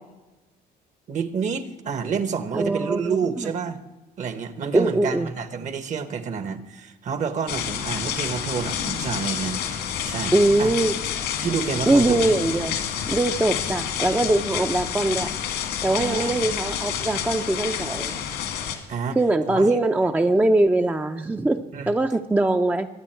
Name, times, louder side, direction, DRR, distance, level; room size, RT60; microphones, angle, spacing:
voice 1, 1.1-3.8 4.2-10.7 11.4-12.3 16.0-16.3 18.9-19.2 19.5-19.8 21.7-21.9, right 6 dB, 45° right, 12 dB, 1.1 m, -29 dB
voice 2, 2.5-3.5 4.7-5.3 10.3-10.9 11.9-12.8 13.1-15.3 15.8-18.2 19.2-22.9, right 2 dB, 10° right, 7 dB, 0.5 m, -22 dB
sound 1, 7.5-18.8, left 9 dB, 80° left, 2.1 m, -29 dB
22.5 x 8.6 x 4.5 m, 1.1 s
cardioid pair, 110°, 17 cm